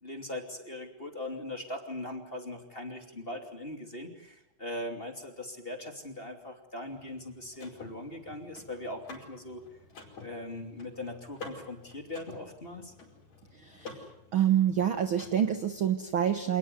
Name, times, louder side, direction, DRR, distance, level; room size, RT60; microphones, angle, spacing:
voice 1, 0.0-9.6 10.2-12.9, left 1 dB, 20° left, 4 dB, 2.7 m, -40 dB
Car / Mechanisms, 6.9-15.8, left 3 dB, 60° left, 6.2 m, -50 dB
voice 2, 13.6-14.0 14.3-16.6, right 9 dB, 55° right, 8 dB, 1.6 m, -27 dB
27.5 x 19.5 x 9.6 m, 0.84 s
omnidirectional pair, 3.5 m